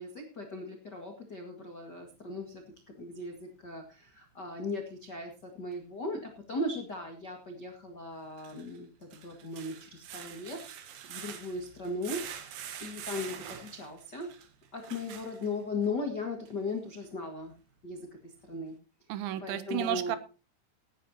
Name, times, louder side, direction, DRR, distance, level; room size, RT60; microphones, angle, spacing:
voice 1, 0.0-12.5 12.8-14.3 14.7-17.5 17.8-18.8 19.4-20.1, left 2 dB, 70° left, 2 dB, 1.0 m, -38 dB
sound 1, 5.7-5.8 8.2-15.9 16.5-16.6 17.0-17.1, right 9 dB, 60° right, 2.7 m, -45 dB
voice 2, 19.1-20.2, right 13 dB, 80° right, 13 dB, 3.1 m, -32 dB
17.5 x 11.0 x 2.9 m, 0.32 s
omnidirectional pair, 5.5 m